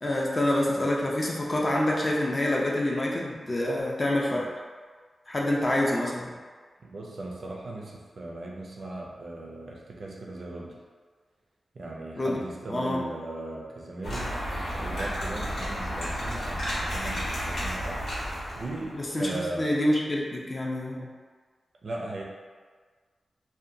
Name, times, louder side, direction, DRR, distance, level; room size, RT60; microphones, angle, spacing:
voice 1, 0.0-4.5 5.3-6.4 12.2-12.4 12.7-13.0 18.9-21.1, left 1 dB, 30° left, -3 dB, 0.4 m, -27 dB
voice 2, 6.8-10.8 11.7-14.4 14.7-18.1 18.6-19.7 21.8-22.2, right 2 dB, 55° right, -1 dB, 0.4 m, -38 dB
sound 1, 14.0-19.0, equal, 85° left, 0.9 m, -32 dB
2.7 x 2.2 x 2.5 m, 1.5 s
wide cardioid pair, 130°, 0 cm